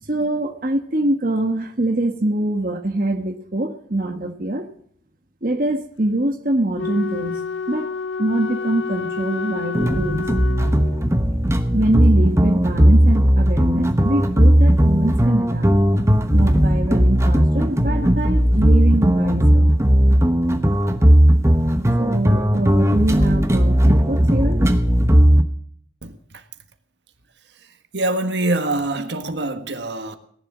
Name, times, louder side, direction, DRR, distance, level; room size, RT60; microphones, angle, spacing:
voice 1, 0.0-4.7 5.4-7.4 7.7-7.9 8.2-10.3 11.7-15.7 16.3-19.7 22.0-24.8, right 1 dB, 50° right, 1.2 m, -24 dB
Wind instrument woodwind instrument, 6.7-11.2, left 4 dB, 85° left, 0.7 m, -29 dB
sound 1, 9.7-25.4, equal, 15° right, 1.0 m, -16 dB
voice 2, 26.0-26.4 27.9-30.2, right 2 dB, 75° right, 1.6 m, -24 dB
18.0 x 11.0 x 6.1 m
head